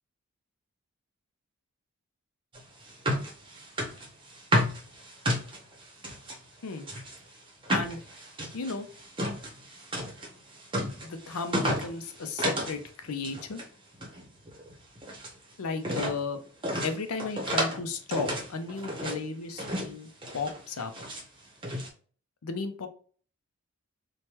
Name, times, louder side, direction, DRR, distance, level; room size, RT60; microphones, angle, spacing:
sound 1, 2.5-6.4 6.8-12.8 13.1-13.7 13.9-15.4 15.8-16.2 16.6-17.8 18.1-19.2 19.6-19.9 20.2-21.2 21.6-21.9, equal, 20° right, 0.7 m, -32 dB
voice 1, 7.7-8.0 8.5-8.9 11.0-13.6 15.6-16.4 16.8-20.1 20.3-20.9 22.4-22.9, left 4 dB, 75° left, 7 dB, 0.5 m, -34 dB
3.1 x 2.2 x 2.9 m, 0.43 s
head